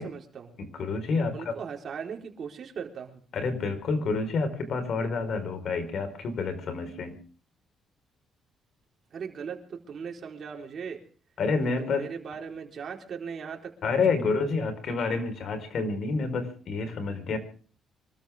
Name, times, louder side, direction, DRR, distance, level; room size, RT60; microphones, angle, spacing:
voice 1, 0.0-0.6 1.3-3.2 9.1-11.0 11.6-14.3, right 6 dB, 55° right, 2 dB, 4.2 m, -39 dB
voice 2, 0.6-1.5 3.3-7.2 11.4-12.1 13.8-17.4, left 4 dB, 65° left, 10 dB, 4.5 m, -28 dB
25.5 x 13.5 x 3.6 m, 0.41 s
cardioid pair, 90°, 0 cm